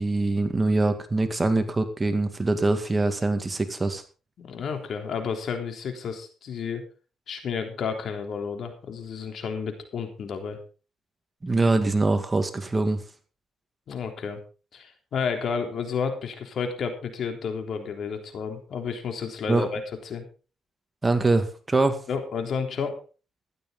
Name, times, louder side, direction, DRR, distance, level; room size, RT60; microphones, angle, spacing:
voice 1, 0.0-4.0 11.4-13.0 19.5-19.7 21.0-22.0, right 2 dB, 20° right, 8 dB, 2.2 m, -23 dB
voice 2, 4.4-6.8 7.3-10.6 13.9-14.4 14.7-20.2 22.1-22.9, left 6 dB, 60° left, 5 dB, 3.5 m, -31 dB
15.0 x 12.0 x 3.9 m, 0.35 s
cardioid pair, 90°, 0 cm